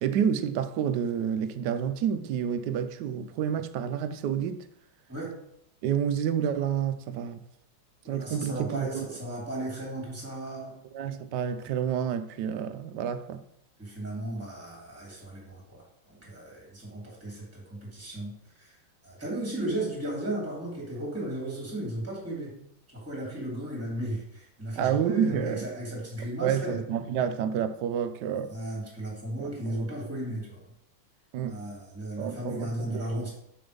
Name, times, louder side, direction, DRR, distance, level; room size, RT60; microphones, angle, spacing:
voice 1, 0.0-4.7 5.8-7.4 8.1-9.1 10.9-13.4 24.8-25.7 26.4-28.5 29.4-29.9 31.3-31.6 32.2-33.2, right 8 dB, 75° right, 1.1 m, -29 dB
voice 2, 8.0-10.7 13.8-18.3 18.6-18.8 19.0-22.5 22.9-26.8 28.5-30.6 31.4-33.3, right 1 dB, 5° right, 3.1 m, -35 dB
6.8 x 6.2 x 5.2 m
omnidirectional pair, 2.1 m